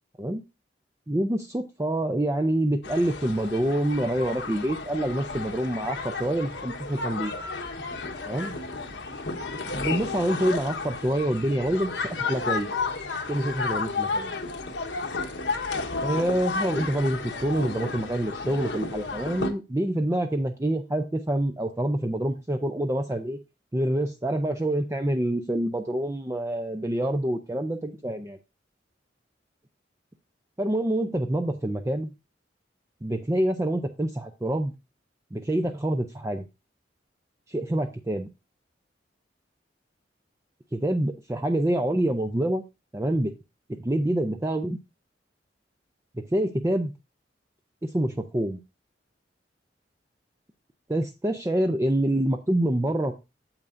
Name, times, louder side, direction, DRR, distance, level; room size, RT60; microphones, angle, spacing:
voice 1, 1.1-7.3 8.3-8.5 9.8-12.7 13.3-14.4 16.0-23.4 23.7-28.4 30.6-32.1 33.0-34.7 35.3-36.4 37.5-38.3 40.7-42.6 42.9-43.3 43.8-44.8 46.3-46.9 47.8-48.6 50.9-53.1, right 1 dB, 15° right, 4 dB, 0.5 m, -26 dB
sound 1, 2.8-19.5, left 4 dB, 75° left, 1.2 m, -32 dB
8.8 x 7.9 x 2.6 m, 0.26 s
head